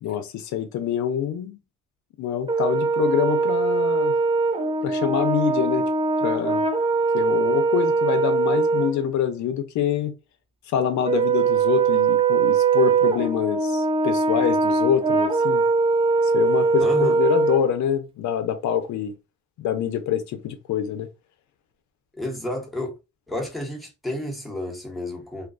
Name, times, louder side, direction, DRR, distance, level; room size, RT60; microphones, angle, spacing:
voice 1, 0.0-1.6 2.2-4.1 4.8-5.9 6.2-6.6 7.1-10.1 10.7-15.6 16.2-19.1 19.6-21.1, left 9 dB, 70° left, 0.5 m, -25 dB
Brass instrument, 2.5-8.9 11.1-17.6, right 4 dB, 20° right, 0.4 m, -21 dB
voice 2, 16.8-17.2 22.1-23.0 23.3-25.5, left 1 dB, ahead, 0.9 m, -31 dB
2.4 x 2.2 x 2.4 m
cardioid pair, 90°, 30 cm